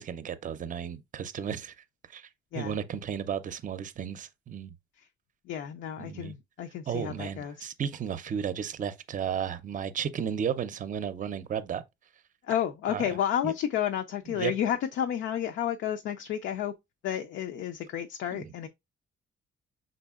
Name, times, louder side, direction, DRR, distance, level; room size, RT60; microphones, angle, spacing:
voice 1, 0.0-1.7 2.1-2.3 2.5-4.7 6.0-6.3 6.9-11.8 12.9-13.1 13.4-13.5 14.3-14.5 18.3-18.7, right 8 dB, 40° right, 0.5 m, -34 dB
voice 2, 5.5-7.7 12.5-16.7 17.0-18.7, left 10 dB, 80° left, 0.6 m, -31 dB
5.3 x 3.9 x 2.4 m
cardioid pair, 90°, 20 cm